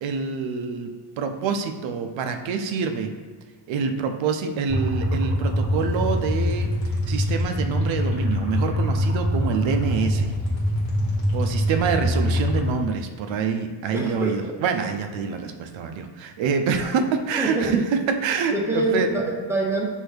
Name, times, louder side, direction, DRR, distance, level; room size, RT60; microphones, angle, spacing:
voice 1, 0.0-3.1 3.7-6.7 7.1-10.3 11.3-19.1, right 5 dB, 85° right, 6 dB, 0.5 m, -26 dB
sound 1, 4.7-12.7, equal, 85° left, 1.3 m, -24 dB
voice 2, 13.9-14.3 17.4-17.8 18.5-19.8, right 2 dB, 5° right, -2 dB, 0.6 m, -25 dB
6.0 x 2.7 x 3.2 m, 1.5 s
cardioid pair, 130°, 44 cm